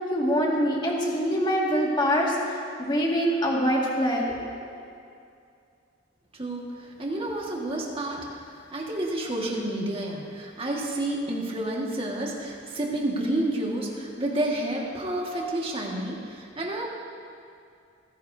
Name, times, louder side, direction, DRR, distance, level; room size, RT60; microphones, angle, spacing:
voice 1, 0.1-4.2, equal, 25° left, -3 dB, 2.0 m, -24 dB
voice 2, 6.4-6.7 7.0-8.4 8.7-16.9, right 1 dB, 30° right, -2 dB, 1.8 m, -30 dB
28.0 x 10.5 x 2.7 m, 2.5 s
head